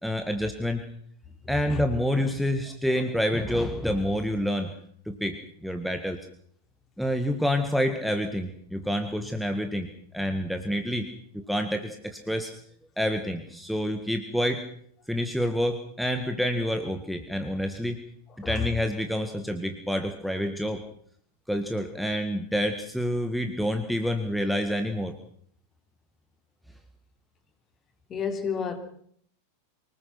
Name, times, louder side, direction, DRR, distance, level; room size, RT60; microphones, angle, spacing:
voice 1, 0.0-0.9 1.5-4.7 5.1-6.2 7.0-11.1 11.3-12.5 13.0-14.6 15.1-18.0 18.4-20.8 21.5-25.2, equal, ahead, 1.9 m, -28 dB
voice 2, 1.4-1.8 2.9-3.0 18.4-18.7 28.1-28.8, left 6 dB, 25° left, 3.7 m, -31 dB
25.0 x 20.0 x 6.1 m
figure-of-eight pair, 90°, 0 cm